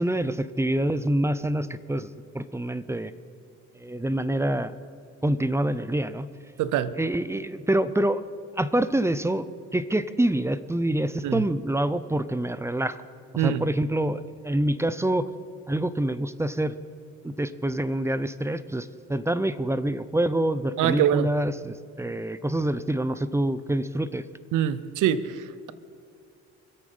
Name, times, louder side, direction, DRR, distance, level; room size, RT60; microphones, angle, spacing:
voice 1, 0.0-2.1 2.3-3.1 3.8-4.7 5.2-6.3 7.0-8.2 8.6-9.4 9.7-13.0 13.3-15.3 15.7-16.7 17.2-24.2, right 1 dB, 10° right, 14 dB, 0.6 m, -26 dB
voice 2, 6.6-6.9 11.2-11.4 13.4-13.7 20.8-21.3 24.5-25.7, right 10 dB, 85° right, 16 dB, 0.7 m, -24 dB
23.5 x 8.4 x 5.5 m, 2.3 s
cardioid pair, 90°, 30 cm